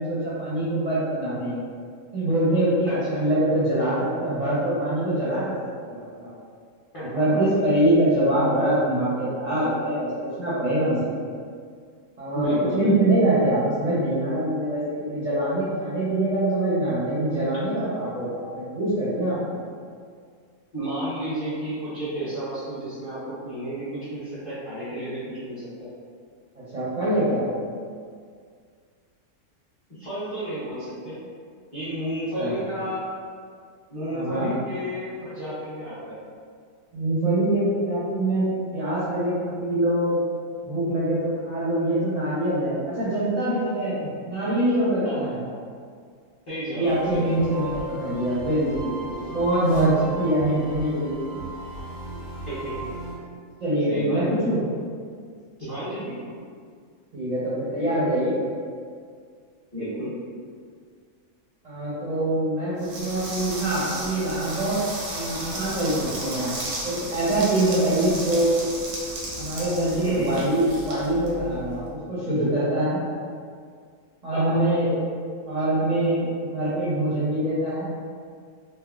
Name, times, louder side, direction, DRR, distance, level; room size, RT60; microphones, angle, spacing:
voice 1, 0.0-1.7 2.1-5.5 5.9-6.3 7.1-11.1 12.2-19.5 26.5-27.5 32.4-32.5 34.1-34.5 36.9-40.2 40.6-44.0 44.3-45.4 46.7-51.4 53.6-54.6 57.1-58.4 61.6-64.8 65.0-66.5 66.8-68.7 69.4-71.8 72.1-73.0 74.2-75.0 75.5-77.8, right 1 dB, 45° right, -12 dB, 0.5 m, -24 dB
voice 2, 12.3-13.1 20.7-25.9 29.9-31.2 31.7-33.1 33.9-36.2 45.0-45.5 46.5-47.5 52.5-52.9 53.9-54.4 55.6-56.3 59.7-60.1 70.0-70.3 74.3-74.6, right 1 dB, 30° left, -13 dB, 0.7 m, -32 dB
sound 1, 46.8-53.1, right 2 dB, 85° left, 1.5 m, -37 dB
sound 2, 62.8-71.8, right 1 dB, 85° right, 1.2 m, -34 dB
3.4 x 2.0 x 2.3 m, 2.1 s
omnidirectional pair, 1.6 m